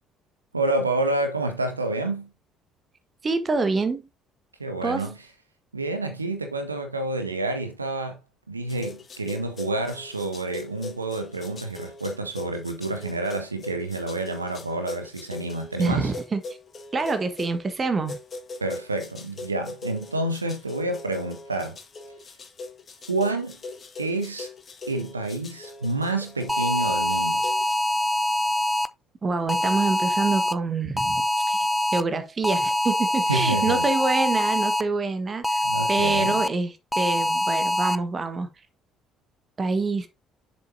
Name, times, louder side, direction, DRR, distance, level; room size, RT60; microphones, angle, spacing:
voice 1, 0.5-2.3 4.6-5.1 5.7-8.2 8.5-16.1 18.6-21.8 23.1-23.6 24.0-24.5 24.9-27.4 33.3-33.8 35.6-36.4, right 2 dB, 85° right, 0.6 m, -28 dB
voice 2, 3.2-4.1 4.8-5.1 15.8-16.4 16.9-18.2 29.2-31.2 31.5-31.6 31.9-35.6 35.9-38.5 39.6-40.1, right 3 dB, 30° right, 1.4 m, -26 dB
sound 1, 8.7-17.6 18.1-27.8, left 3 dB, 35° left, 1.7 m, -41 dB
sound 2, 26.5-28.9 29.5-30.5 31.0-32.0 32.4-34.8 35.4-36.5 36.9-37.9, left 1 dB, 5° left, 0.5 m, -24 dB
7.6 x 7.0 x 2.7 m
figure-of-eight pair, 50°, 0 cm